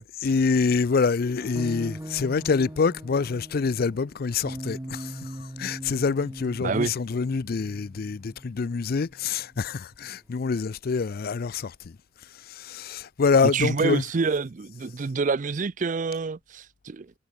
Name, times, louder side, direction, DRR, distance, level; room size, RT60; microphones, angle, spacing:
voice 1, 0.2-11.9 12.3-14.2, left 5 dB, 50° left, 0.4 m, -26 dB
sound 1, 1.4-10.2, right 1 dB, 15° right, 0.8 m, -41 dB
voice 2, 6.6-6.9 13.5-17.1, right 4 dB, 40° right, 0.4 m, -27 dB
head